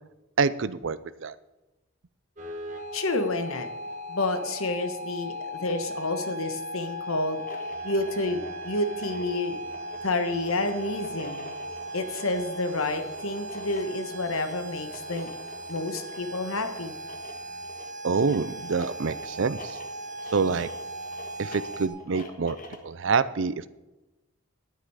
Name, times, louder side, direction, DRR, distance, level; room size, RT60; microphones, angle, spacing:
voice 1, 0.4-1.4 18.0-19.8 20.3-20.7 21.4-22.6 22.8-23.7, right 5 dB, 60° right, 15 dB, 0.5 m, -26 dB
sound 1, 2.4-21.9, right 1 dB, 35° right, 1.4 m, -38 dB
voice 2, 2.9-3.7 4.1-7.4 7.8-9.6 10.0-11.5 11.9-15.3 15.7-16.9, left 2 dB, 75° left, 7 dB, 1.3 m, -29 dB
sound 2, 7.2-22.9, left 1 dB, 40° left, 1.3 m, -45 dB
10.0 x 9.7 x 4.9 m, 1.0 s
head